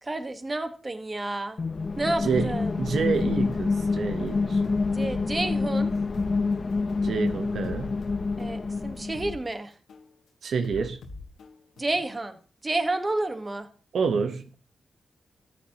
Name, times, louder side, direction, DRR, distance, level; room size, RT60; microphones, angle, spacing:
voice 1, 0.0-1.6 1.9-2.8 4.9-5.9 8.4-9.7 11.8-12.4 12.6-13.7, right 2 dB, 25° right, 1.2 m, -30 dB
sound 1, 1.6-9.4, left 4 dB, 40° left, 0.4 m, -27 dB
voice 2, 2.2-4.6 7.0-7.9 10.4-11.0 13.9-14.7, right 5 dB, 70° right, 0.8 m, -28 dB
sound 2, 3.1-3.4 3.9-4.1 4.6-6.4 6.9-7.1 7.6-9.4 9.9-10.1 10.6-12.1, left 3 dB, 90° left, 1.6 m, -43 dB
14.0 x 9.1 x 2.9 m
wide cardioid pair, 100°, 0 cm